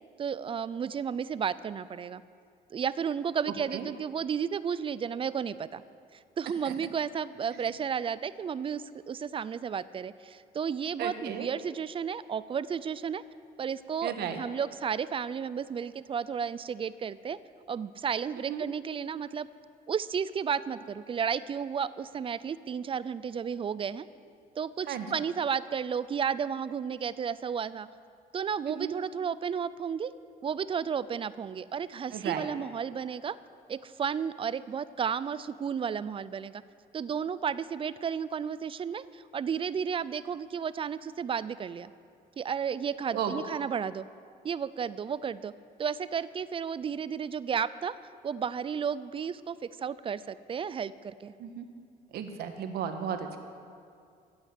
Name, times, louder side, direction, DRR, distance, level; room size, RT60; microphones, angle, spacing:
voice 1, 0.2-2.2 2.7-5.8 6.4-13.2 13.6-17.4 17.7-19.5 19.9-24.1 24.6-27.9 28.3-30.1 30.4-33.4 33.7-36.6 36.9-41.9 42.4-44.1 44.4-45.5 45.8-48.0 48.2-51.3, right 7 dB, 30° right, 17 dB, 0.4 m, -33 dB
voice 2, 11.0-11.5 14.0-14.4 18.5-18.6 24.9-25.1 28.7-28.9 32.1-32.5 43.1-43.3 51.4-51.7 52.1-53.4, right 8 dB, 70° right, 6 dB, 1.4 m, -34 dB
15.0 x 8.8 x 8.2 m, 2.3 s
cardioid pair, 110°, 17 cm